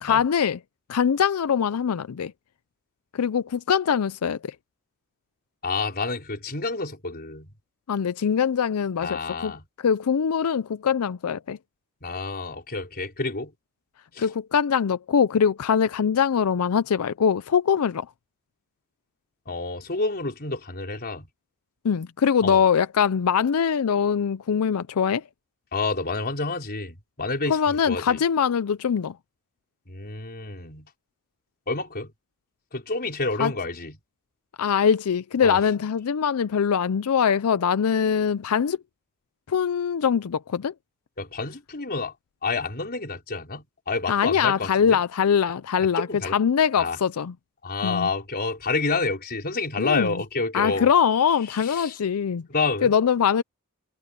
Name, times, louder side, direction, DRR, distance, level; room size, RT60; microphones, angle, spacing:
voice 1, 0.0-0.6 0.9-2.3 3.1-4.5 7.9-9.5 9.8-11.6 14.2-18.1 21.8-25.2 27.5-29.1 33.4-33.5 34.6-38.8 39.5-40.7 44.1-47.3 47.8-48.1 49.8-50.1 50.5-52.4 52.8-53.4, left 7 dB, 90° left, 0.5 m, -22 dB
voice 2, 5.6-7.5 9.0-9.6 12.0-13.5 14.1-14.3 19.5-21.3 22.4-22.6 25.7-28.2 29.9-30.9 31.7-32.1 32.7-34.0 35.4-35.6 41.2-42.1 42.4-45.0 45.8-46.4 46.7-47.0 47.6-50.9 51.5-52.0 52.5-52.9, left 3 dB, 45° left, 4.6 m, -29 dB
head